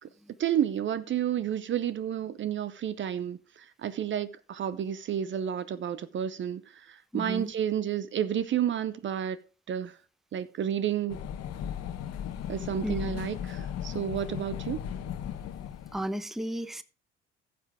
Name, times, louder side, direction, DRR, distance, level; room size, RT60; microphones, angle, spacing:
voice 1, 0.4-9.4 9.7-10.0 10.3-11.2 12.5-14.8, right 9 dB, 40° right, 0.6 m, -31 dB
voice 2, 7.1-7.5 12.8-13.0 15.9-16.8, equal, ahead, 0.7 m, -33 dB
sound 1, 11.1-16.1, left 9 dB, 55° left, 1.1 m, -36 dB
15.0 x 6.0 x 3.4 m
hypercardioid pair, 55°, 29 cm